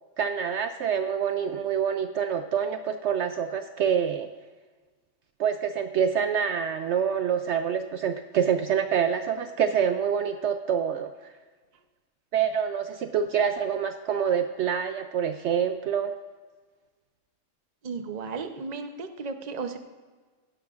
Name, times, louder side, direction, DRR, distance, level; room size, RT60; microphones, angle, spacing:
voice 1, 0.2-4.3 5.4-11.3 12.3-16.1, right 8 dB, 65° right, 8 dB, 0.8 m, -26 dB
voice 2, 17.8-19.8, right 4 dB, 35° right, 7 dB, 0.8 m, -34 dB
16.5 x 12.0 x 2.5 m, 1.4 s
omnidirectional pair, 1.4 m